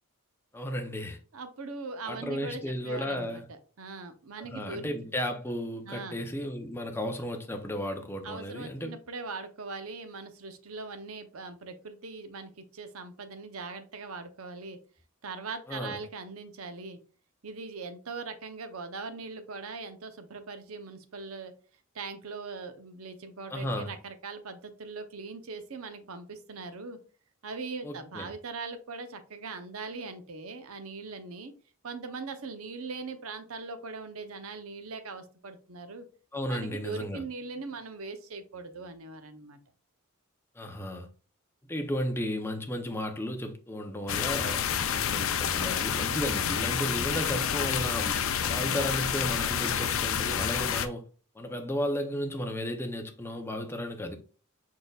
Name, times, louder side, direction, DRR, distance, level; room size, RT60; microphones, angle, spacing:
voice 1, 0.5-1.2 2.1-3.5 4.4-9.0 15.7-16.0 23.5-23.9 27.8-28.3 36.3-37.2 40.6-41.1 41.7-48.2 48.5-51.0 51.3-54.2, equal, 10° left, 0.6 m, -34 dB
voice 2, 1.3-4.9 5.8-6.2 8.2-14.8 15.2-17.0 17.4-21.5 21.9-27.0 27.4-31.5 31.8-36.1 36.5-39.6, right 4 dB, 75° right, 0.7 m, -40 dB
sound 1, 44.1-50.9, left 8 dB, 65° left, 0.5 m, -29 dB
5.1 x 4.3 x 2.3 m
head